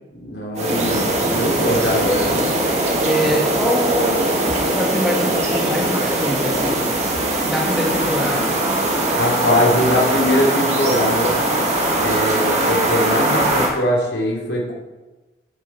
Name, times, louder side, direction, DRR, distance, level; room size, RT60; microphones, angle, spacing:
voice 1, 0.1-2.5 9.2-11.4 11.9-14.7, left 1 dB, 75° left, -2 dB, 3.1 m, -21 dB
sound 1, 0.6-13.7, right 1 dB, 35° right, 1.8 m, -20 dB
voice 2, 3.0-4.2 4.7-6.9 7.4-8.6, equal, ahead, -2 dB, 1.7 m, -23 dB
10.5 x 9.0 x 4.6 m, 1.2 s
head